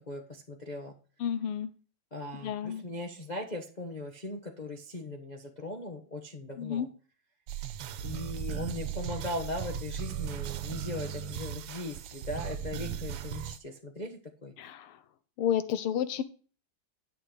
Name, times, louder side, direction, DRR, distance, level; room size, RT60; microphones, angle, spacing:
voice 1, 0.1-0.9 2.1-6.9 8.0-14.5, left 2 dB, 25° left, 3 dB, 0.9 m, -39 dB
voice 2, 1.2-1.7 2.4-2.8 6.6-6.9 14.6-15.0 15.4-16.2, left 9 dB, 90° left, 12 dB, 1.8 m, -31 dB
sound 1, 7.5-13.6, right 9 dB, 80° right, 1.7 m, -37 dB
10.5 x 6.7 x 4.9 m, 0.39 s
omnidirectional pair, 2.4 m